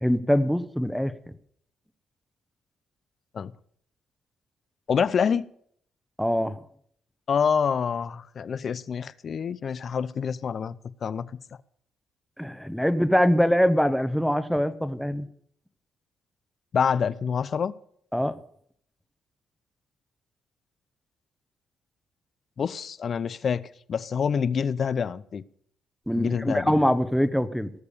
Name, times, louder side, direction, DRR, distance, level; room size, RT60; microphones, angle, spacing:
voice 1, 0.0-1.1 6.2-6.6 12.4-15.3 18.1-18.4 26.1-27.7, equal, ahead, 1.0 m, -23 dB
voice 2, 4.9-5.5 7.3-10.8 11.0-11.3 16.7-17.7 22.6-25.4 26.1-26.7, left 6 dB, 50° left, 0.6 m, -26 dB
18.5 x 6.8 x 6.8 m
cardioid pair, 90°, 0 cm